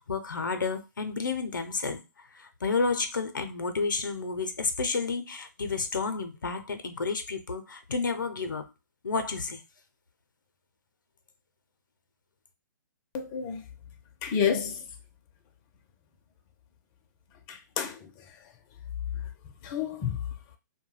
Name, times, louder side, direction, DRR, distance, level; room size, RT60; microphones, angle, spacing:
voice 1, 0.0-2.0 2.3-8.7 9.0-9.6, left 4 dB, 85° left, 0.5 m, -31 dB
voice 2, 13.1-13.6 14.2-14.8 17.5-18.1 19.6-20.2, left 7 dB, 30° left, 0.4 m, -29 dB
2.2 x 2.1 x 3.1 m
figure-of-eight pair, 130°, 10 cm